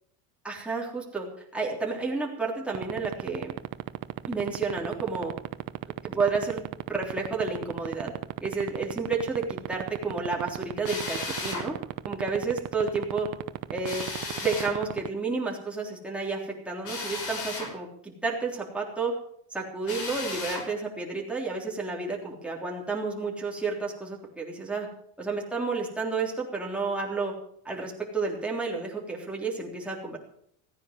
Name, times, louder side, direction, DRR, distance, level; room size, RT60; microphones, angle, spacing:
voice 1, 0.4-1.3 1.5-3.5 4.3-5.3 6.0-6.6 6.9-8.1 8.4-11.8 12.1-13.3 13.7-14.0 14.4-19.1 19.5-24.9 25.2-27.3 27.7-30.2, right 4 dB, 5° right, -3 dB, 3.5 m, -31 dB
sound 1, 2.7-15.1, right 17 dB, 55° right, 1.0 m, -31 dB
Drill, 10.8-11.7 13.8-14.7 16.8-17.7 19.8-20.7, left 3 dB, 55° left, 5.3 m, -35 dB
15.0 x 9.8 x 7.4 m, 0.68 s
cardioid pair, 140°, 43 cm